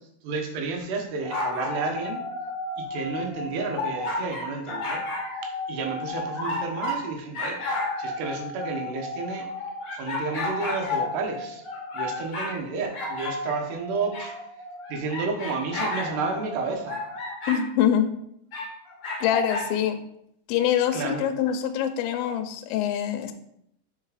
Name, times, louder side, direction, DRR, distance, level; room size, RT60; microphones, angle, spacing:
voice 1, 0.2-2.2 2.8-5.0 5.7-7.6 8.0-9.5 9.9-11.6 11.9-14.3 14.9-17.0 20.9-21.3, right 4 dB, 80° right, 3 dB, 3.2 m, -31 dB
sound 1, 1.2-7.0 7.3-12.6 12.9-17.6 18.5-19.7, left 2 dB, 45° left, 1.5 m, -32 dB
voice 2, 17.5-18.1 19.2-20.0 20.5-23.3, left 9 dB, 80° left, 5 dB, 2.3 m, -24 dB
7.4 x 4.5 x 4.9 m, 0.75 s
omnidirectional pair, 4.7 m